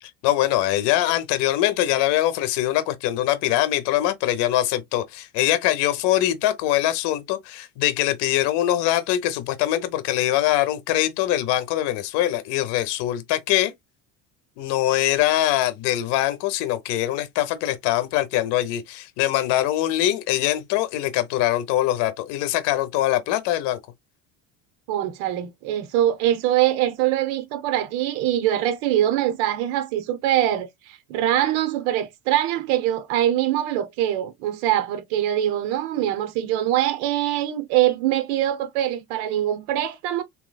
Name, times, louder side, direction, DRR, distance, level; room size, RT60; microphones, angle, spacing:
voice 1, 0.0-13.7 14.6-23.8, left 14 dB, 70° left, 0.8 m, -23 dB
voice 2, 24.9-40.2, right 12 dB, 85° right, 0.8 m, -23 dB
3.0 x 3.0 x 2.2 m
cardioid pair, 125°, 43 cm